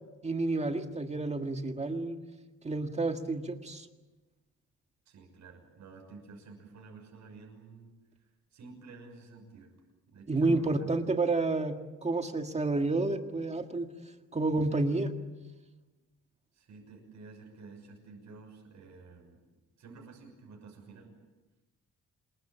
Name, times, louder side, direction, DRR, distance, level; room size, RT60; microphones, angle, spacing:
voice 1, 0.2-2.2 2.6-3.9 10.3-13.9 14.3-15.1, right 2 dB, 20° right, 5 dB, 1.8 m, -30 dB
voice 2, 5.1-7.9 8.5-9.7 10.1-10.9 14.7-14.8 16.5-19.4 19.8-21.1, right 4 dB, 65° right, 1 dB, 6.4 m, -51 dB
27.5 x 22.0 x 8.9 m, 1.1 s
cardioid pair, 135°, 30 cm